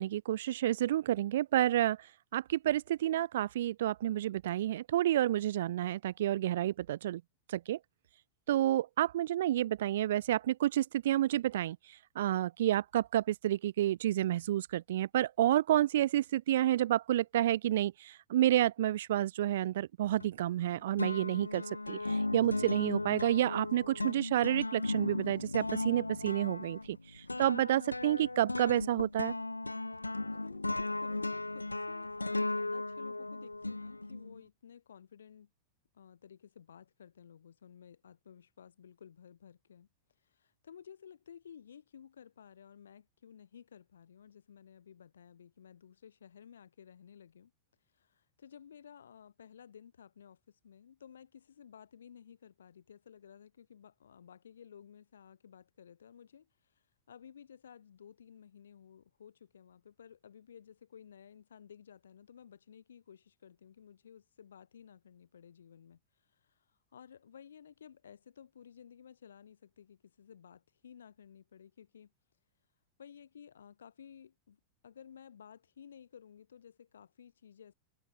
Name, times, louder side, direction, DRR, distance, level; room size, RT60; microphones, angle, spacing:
voice 1, 0.0-2.0 2.3-7.2 7.5-7.8 8.5-11.8 12.2-27.0 27.4-29.3, right 13 dB, 60° right, 0.5 m, -30 dB
sound 1, 20.2-20.7 21.0-34.4, left 2 dB, 85° left, 0.8 m, -36 dB
voice 2, 30.3-35.5 35.9-47.5 47.8-72.1 73.0-77.7, left 8 dB, 65° left, 7.2 m, -55 dB
figure-of-eight pair, 90°, 0 cm